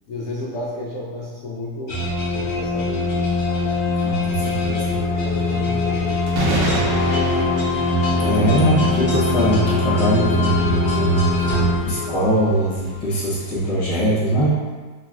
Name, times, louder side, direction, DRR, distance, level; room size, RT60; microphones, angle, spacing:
voice 1, 0.1-2.0 2.3-3.3 5.1-6.9 8.2-8.4 11.4-11.5, left 2 dB, 85° left, -6 dB, 0.6 m, -32 dB
sound 1, 1.9-12.5, left 2 dB, 55° left, 0.9 m, -22 dB
voice 2, 4.0-5.0 8.2-11.3 11.8-14.6, right 1 dB, 30° left, -9 dB, 0.7 m, -21 dB
sound 2, 5.2-13.7, right 2 dB, 80° right, 1.3 m, -30 dB
3.1 x 2.6 x 2.4 m, 1.4 s
omnidirectional pair, 1.9 m